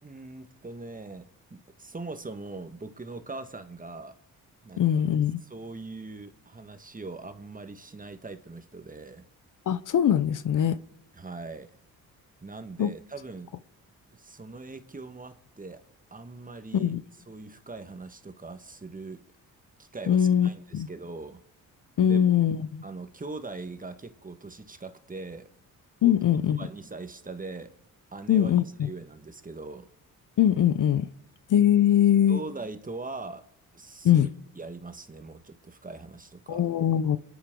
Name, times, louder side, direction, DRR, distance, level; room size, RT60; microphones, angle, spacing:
voice 1, 0.0-4.2 4.6-5.1 5.5-9.3 11.2-11.7 12.4-13.5 14.1-15.8 16.1-16.9 17.3-19.2 19.8-21.4 22.0-22.4 22.8-25.5 26.0-26.1 26.6-27.7 28.1-28.5 28.8-29.9 32.3-33.4 33.7-34.3 34.5-36.6, right 3 dB, 20° right, 1.4 m, -41 dB
voice 2, 4.8-5.4 9.7-10.8 12.8-12.9 16.7-17.0 20.1-20.9 22.0-22.8 26.0-26.6 28.3-28.9 30.4-31.1 31.5-32.4 34.0-34.3 36.5-37.2, left 10 dB, 55° left, 0.7 m, -22 dB
28.0 x 10.5 x 3.8 m
cardioid pair, 70°, 37 cm